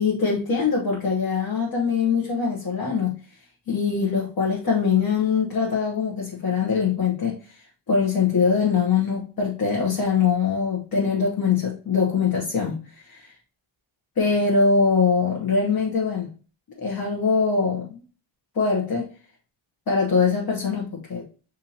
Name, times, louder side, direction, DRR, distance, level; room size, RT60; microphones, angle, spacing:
voice 1, 0.0-3.4 3.7-13.3 14.2-16.3 16.8-18.0 18.5-19.1 19.9-21.2, left 5 dB, 45° left, -3 dB, 1.0 m, -23 dB
5.5 x 2.7 x 2.7 m, 0.38 s
wide cardioid pair, 110°, 49 cm